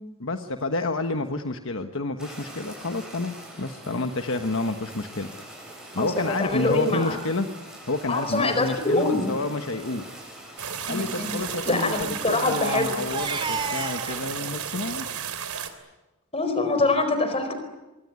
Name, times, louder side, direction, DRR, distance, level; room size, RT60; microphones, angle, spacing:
voice 1, 0.2-5.3 5.9-7.5 7.9-10.1 10.9-15.1, left 2 dB, 60° left, 6 dB, 1.3 m, -29 dB
Fire, 2.2-15.0, right 1 dB, 5° right, 7.6 m, -44 dB
voice 2, 6.4-7.2 8.1-9.3 10.9-11.3 11.7-12.9 16.3-17.5, left 2 dB, 25° left, 8 dB, 4.6 m, -24 dB
Crying sobbing, 7.4-7.6 8.3-8.4 8.6-8.8 9.1-9.3 9.8-10.0 11.2-14.2, right 4 dB, 25° right, 2.5 m, -34 dB
sound 1, 10.6-15.7, right 7 dB, 75° right, 3.2 m, -33 dB
24.5 x 23.0 x 9.7 m, 1.1 s
head